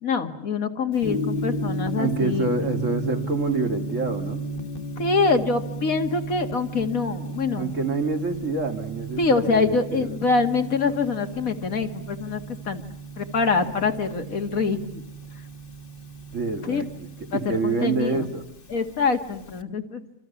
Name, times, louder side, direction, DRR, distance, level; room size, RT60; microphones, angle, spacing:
voice 1, 0.0-2.5 5.0-7.7 9.2-12.8 13.2-15.0 16.7-16.9 17.3-18.3 18.7-20.0, left 4 dB, 85° left, 6 dB, 2.3 m, -25 dB
Gong, 1.0-19.6, right 2 dB, 40° left, 1.6 m, -34 dB
voice 2, 2.0-4.4 7.6-10.2 16.3-18.4, right 3 dB, 65° right, 4 dB, 2.6 m, -27 dB
27.0 x 26.5 x 7.1 m, 0.83 s
omnidirectional pair, 1.4 m